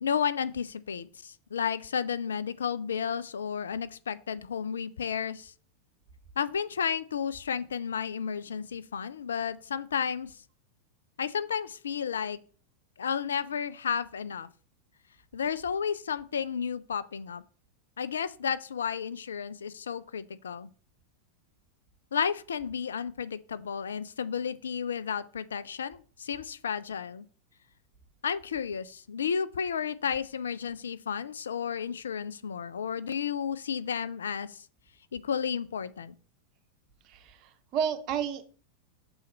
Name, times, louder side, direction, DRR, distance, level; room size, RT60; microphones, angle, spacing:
voice 1, 0.0-5.5 6.4-10.4 11.2-12.4 13.0-14.5 15.3-17.4 18.0-20.7 22.1-27.3 28.2-34.6 35.1-36.1, left 7 dB, 70° left, 0.4 m, -32 dB
voice 2, 37.0-38.5, right 8 dB, 40° right, 1.0 m, -32 dB
6.3 x 4.1 x 6.1 m
figure-of-eight pair, 90°, 0 cm